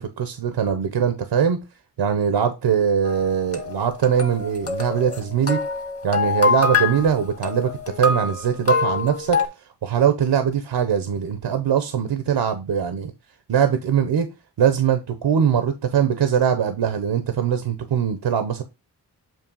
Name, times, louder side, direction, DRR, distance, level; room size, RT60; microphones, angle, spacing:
voice 1, 0.0-1.6 2.0-5.6 6.0-9.4 9.8-13.1 13.5-14.3 14.6-18.6, right 8 dB, 85° right, 0.9 m, -21 dB
sound 1, 3.0-9.5, left 4 dB, 35° left, 1.7 m, -25 dB
7.5 x 2.8 x 5.4 m
cardioid pair, 45°, 41 cm